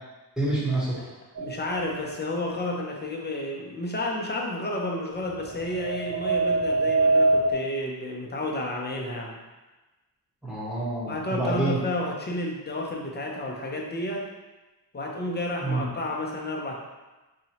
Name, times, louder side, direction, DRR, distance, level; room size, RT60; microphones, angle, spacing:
voice 1, 0.4-1.0 10.4-11.8 15.6-15.9, right 2 dB, ahead, -8 dB, 0.9 m, -27 dB
voice 2, 1.4-9.4 11.1-14.3 14.9-16.8, left 1 dB, 25° left, -1 dB, 0.4 m, -31 dB
sound 1, 1.4-2.1 5.4-7.5, right 2 dB, 45° right, 0.5 m, -24 dB
4.1 x 2.8 x 2.8 m, 1.1 s
wide cardioid pair, 175°, 43 cm